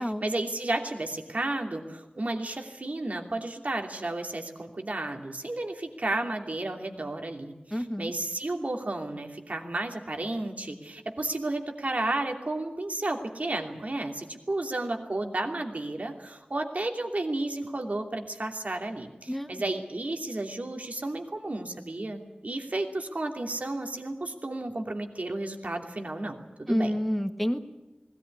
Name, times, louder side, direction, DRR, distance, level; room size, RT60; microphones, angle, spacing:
voice 1, 0.0-27.0, right 2 dB, 55° right, 3 dB, 2.9 m, -32 dB
voice 2, 7.7-8.1 19.3-19.6 26.7-27.6, equal, 5° left, 7 dB, 1.8 m, -28 dB
20.0 x 18.0 x 9.8 m, 1.0 s
wide cardioid pair, 65°, 3 cm